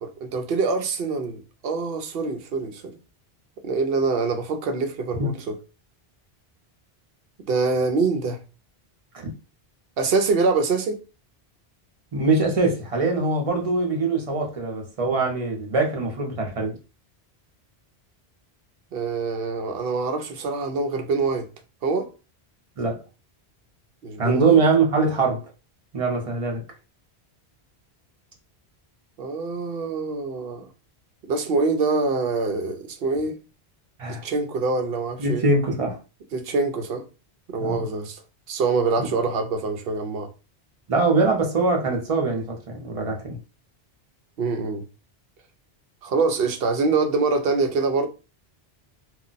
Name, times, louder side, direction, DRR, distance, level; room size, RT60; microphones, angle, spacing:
voice 1, 0.0-2.9 3.6-5.6 7.5-8.4 10.0-11.0 18.9-21.5 21.8-22.1 24.0-24.6 29.2-30.7 31.3-33.4 34.1-35.5 36.3-37.0 37.5-38.2 38.5-40.3 44.4-44.8 46.0-48.1, right 4 dB, 70° right, 0.8 m, -25 dB
voice 2, 12.1-16.7 22.8-23.0 24.2-25.4 25.9-26.6 34.0-34.2 35.2-36.0 37.6-37.8 39.0-39.1 40.9-43.4, right 3 dB, 40° right, 0.7 m, -22 dB
2.3 x 2.1 x 3.8 m
omnidirectional pair, 1.1 m